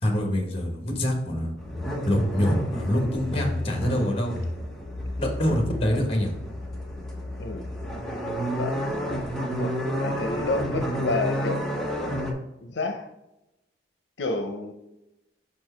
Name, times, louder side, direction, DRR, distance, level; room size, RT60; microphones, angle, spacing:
voice 1, 0.0-1.5 2.1-4.4 5.2-6.3, equal, 35° left, 3 dB, 1.4 m, -25 dB
sound 1, 1.6-12.3, equal, 5° left, 1.0 m, -31 dB
voice 2, 9.6-11.7 12.6-13.1 14.2-14.7, left 2 dB, 80° left, 5 dB, 0.6 m, -29 dB
5.3 x 4.6 x 4.4 m, 0.93 s
head